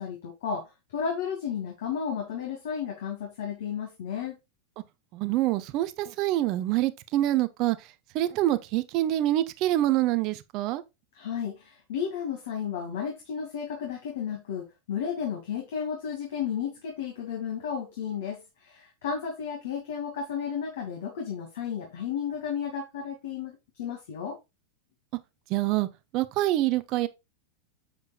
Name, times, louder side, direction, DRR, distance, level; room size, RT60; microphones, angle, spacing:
voice 1, 0.0-4.4 11.1-24.4, left 7 dB, 55° left, 2.5 m, -33 dB
voice 2, 5.1-7.8 8.1-10.8 25.5-25.9 26.1-27.1, right 14 dB, 40° right, 1.0 m, -26 dB
7.9 x 7.3 x 2.4 m
figure-of-eight pair, 90°, 0 cm